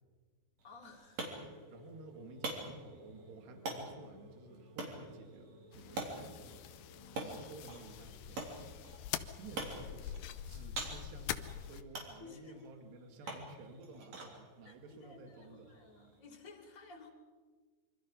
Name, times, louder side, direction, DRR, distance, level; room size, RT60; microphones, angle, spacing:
voice 1, 0.6-1.6 5.9-6.0 12.2-12.6 13.2-13.3 14.7-17.1, left 4 dB, 20° left, 0 dB, 3.7 m, -55 dB
sound 1, 0.6-16.2, right 2 dB, 40° right, 4.2 m, -47 dB
sound 2, 1.2-7.4, equal, 15° right, 4.6 m, -59 dB
voice 2, 1.7-8.5 9.4-15.8, right 2 dB, 75° right, 4 dB, 4.2 m, -53 dB
sound 3, 5.7-11.8, left 11 dB, 75° left, 2.8 m, -45 dB
26.5 x 25.0 x 5.5 m, 1.5 s
omnidirectional pair, 4.9 m